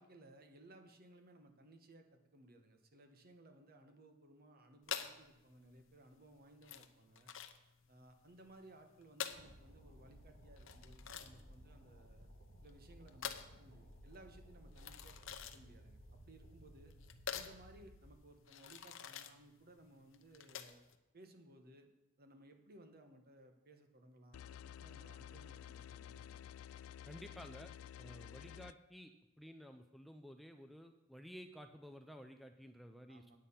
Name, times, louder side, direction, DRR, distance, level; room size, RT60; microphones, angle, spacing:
voice 1, 0.0-7.3 7.9-12.3 12.6-16.9 17.3-20.8 21.1-21.9 22.2-26.4 33.1-33.4, right 1 dB, 45° right, 6 dB, 1.1 m, -61 dB
sound 1, 4.8-21.0, left 8 dB, 65° left, 0.7 m, -48 dB
sound 2, 9.3-18.1, equal, 90° right, 1.9 m, -59 dB
sound 3, 24.3-28.7, left 9 dB, 90° left, 0.3 m, -52 dB
voice 2, 27.1-27.7 28.0-33.4, equal, ahead, 5 dB, 0.4 m, -54 dB
9.0 x 8.6 x 5.6 m, 0.99 s
head